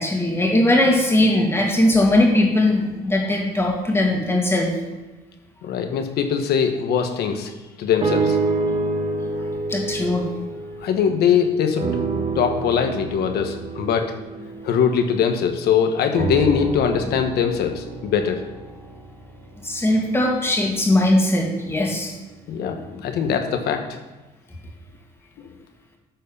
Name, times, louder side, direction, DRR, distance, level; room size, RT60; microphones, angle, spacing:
voice 1, 0.0-4.7 9.7-10.3 19.6-22.1, left 1 dB, 15° left, 0 dB, 2.1 m, -19 dB
voice 2, 5.6-7.5 7.8-8.4 10.8-11.9 12.3-14.1 14.6-18.4 22.5-24.0, left 7 dB, 70° left, 6 dB, 1.2 m, -21 dB
sound 1, 8.0-11.4 11.8-15.5 16.1-20.3 21.0-21.1, right 3 dB, 35° right, 1.5 m, -28 dB
12.0 x 4.5 x 5.6 m, 1.1 s
cardioid pair, 110°, 17 cm